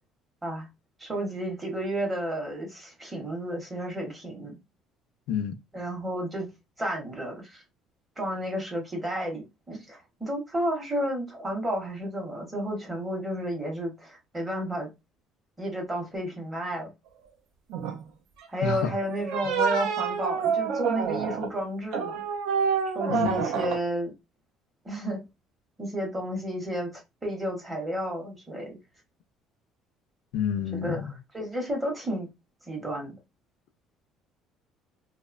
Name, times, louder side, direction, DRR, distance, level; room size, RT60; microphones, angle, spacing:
voice 1, 1.0-4.6 5.7-6.5 6.8-7.6 8.2-14.9 15.6-16.9 18.5-22.2 22.9-24.1 24.8-25.2 25.8-28.8 30.8-31.0 31.3-32.3 32.7-33.1, equal, 15° right, 0.7 m, -32 dB
sound 1, 17.7-18.0 19.1-21.5 21.9-23.8, right 6 dB, 65° right, 0.4 m, -28 dB
voice 2, 18.6-19.0 23.1-23.4 30.3-31.0, left 6 dB, 70° left, 0.3 m, -28 dB
2.6 x 2.1 x 2.3 m
cardioid pair, 175°, 0 cm